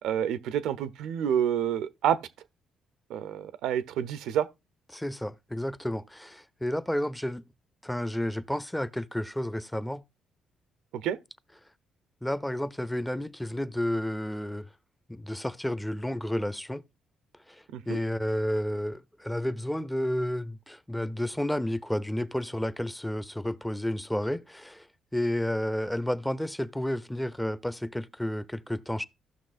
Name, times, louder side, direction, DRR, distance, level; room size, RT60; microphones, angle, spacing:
voice 1, 0.0-2.2 3.1-4.5 10.9-11.2 17.7-18.0, right 9 dB, 85° right, 0.5 m, -28 dB
voice 2, 4.9-7.4 7.8-10.0 12.2-14.7 15.1-16.8 17.5-24.9 25.1-29.0, left 1 dB, 5° left, 0.4 m, -31 dB
15.0 x 6.1 x 2.4 m
cardioid pair, 90°, 0 cm